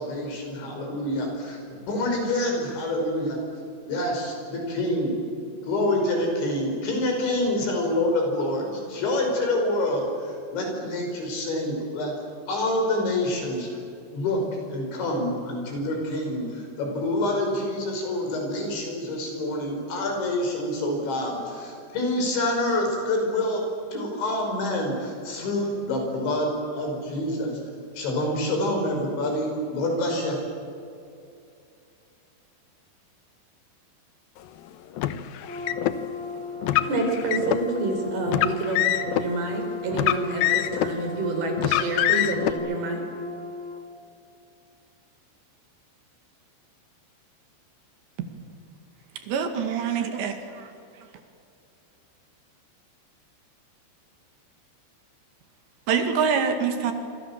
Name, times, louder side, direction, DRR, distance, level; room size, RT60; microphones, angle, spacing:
voice 1, 0.0-1.6 1.9-3.4 3.9-5.1 5.6-12.1 12.5-13.7 14.1-14.4 14.7-23.6 23.9-27.6 28.0-30.4, left 1 dB, 90° left, 8.0 m, -27 dB
Car, 35.0-36.0 36.6-37.6 38.3-39.3 39.9-41.0 41.6-42.5, left 13 dB, 70° left, 2.4 m, -24 dB
Brass instrument, 35.4-43.8, left 4 dB, 45° left, 1.7 m, -36 dB
voice 2, 36.8-43.0, right 3 dB, 60° right, 6.2 m, -28 dB
voice 3, 49.2-50.3 55.9-56.9, right 6 dB, 75° right, 4.3 m, -24 dB
26.5 x 26.0 x 7.4 m
omnidirectional pair, 5.1 m